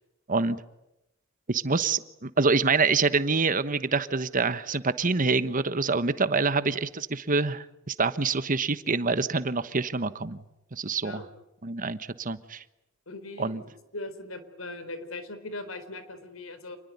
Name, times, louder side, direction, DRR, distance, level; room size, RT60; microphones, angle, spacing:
voice 1, 0.3-0.6 1.5-10.4 10.7-11.2 11.6-12.6 13.4-13.6, right 4 dB, 40° right, 13 dB, 1.2 m, -26 dB
voice 2, 13.1-13.6 13.9-16.8, left 2 dB, 90° left, 11 dB, 4.0 m, -39 dB
28.5 x 21.0 x 9.5 m, 0.91 s
head